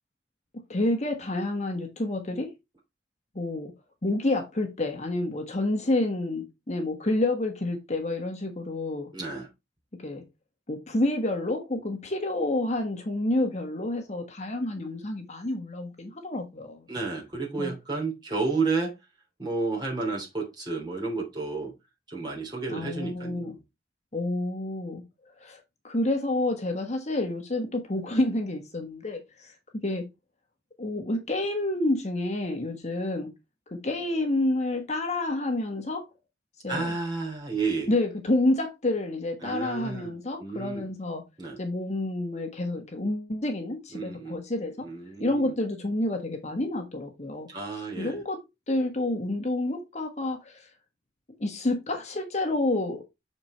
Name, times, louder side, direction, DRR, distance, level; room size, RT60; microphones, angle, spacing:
voice 1, 0.7-2.5 3.3-3.7 4.0-9.1 10.0-10.2 10.7-16.9 17.6-17.7 22.7-23.6 24.1-25.0 25.4-29.5 29.8-30.0 30.8-33.3 33.7-36.1 36.6-36.9 37.9-41.2 41.6-44.9 45.2-47.5 48.0-50.7 51.4-53.0, left 2 dB, 40° left, 1.4 m, -29 dB
voice 2, 9.1-9.5 16.9-18.9 19.4-21.7 22.1-23.6 36.7-37.9 39.4-40.9 41.4-41.6 43.9-44.4 44.8-45.5 47.5-48.2, right 4 dB, 25° right, 3.2 m, -31 dB
6.8 x 4.4 x 4.3 m
head